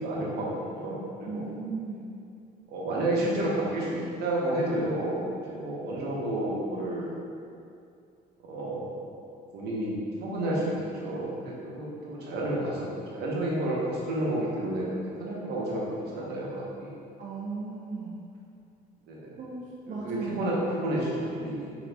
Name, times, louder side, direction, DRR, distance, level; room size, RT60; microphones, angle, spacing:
voice 1, 0.0-1.4 2.7-7.1 8.4-8.9 9.5-9.9 10.2-12.9 13.1-14.9 15.2-17.0 19.1-19.4 19.9-21.8, right 1 dB, 75° right, -5 dB, 1.0 m, -30 dB
voice 2, 1.2-2.1 17.2-18.2 19.4-20.6, right 4 dB, 45° right, -4 dB, 0.5 m, -37 dB
3.9 x 2.9 x 3.4 m, 2.5 s
cardioid pair, 110°, 17 cm